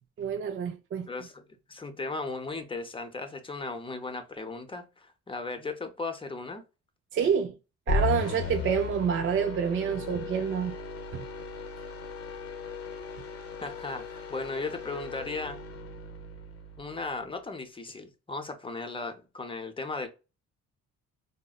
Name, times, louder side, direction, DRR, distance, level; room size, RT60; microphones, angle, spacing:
voice 1, 0.2-1.1 7.1-7.5 7.9-10.8 11.1-11.2, right 7 dB, 45° right, 0.4 m, -28 dB
voice 2, 1.1-6.6 13.6-15.6 16.8-20.1, left 3 dB, 15° left, 0.6 m, -36 dB
sound 1, 7.9-17.2, left 4 dB, 50° left, 0.8 m, -36 dB
3.9 x 2.0 x 2.3 m
cardioid pair, 90°, 30 cm